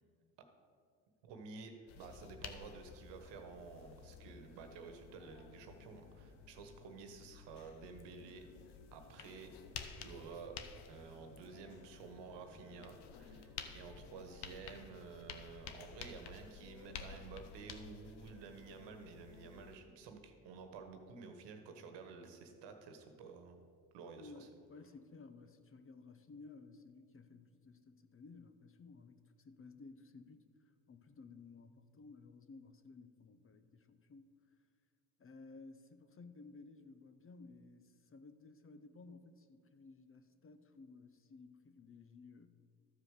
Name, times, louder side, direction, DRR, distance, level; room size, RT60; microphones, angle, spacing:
voice 1, 1.2-8.4 8.9-9.5 10.0-10.5 10.9-23.6 23.9-24.5, right 5 dB, 75° right, 6 dB, 1.4 m, -52 dB
sound 1, 1.9-19.8, left 6 dB, 65° left, 1.0 m, -52 dB
voice 2, 24.1-30.4 30.9-34.3 35.2-42.5, left 4 dB, 30° left, 10 dB, 0.7 m, -56 dB
13.0 x 4.9 x 6.6 m, 2.2 s
supercardioid pair, 70°, 42 cm